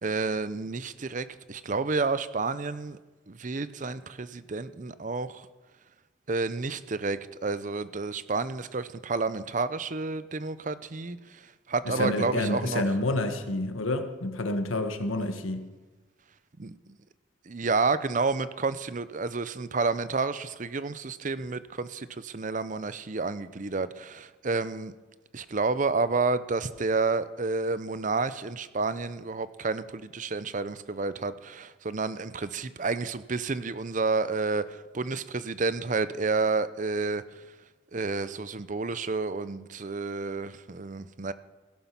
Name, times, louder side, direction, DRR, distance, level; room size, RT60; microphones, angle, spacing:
voice 1, 0.0-3.0 3.3-5.5 6.3-12.8 16.6-16.8 17.5-24.9 25.3-37.4 37.9-41.3, right 3 dB, 40° right, 15 dB, 0.6 m, -30 dB
voice 2, 11.9-15.7, left 2 dB, 90° left, 7 dB, 1.5 m, -29 dB
16.5 x 11.0 x 5.9 m, 1.2 s
head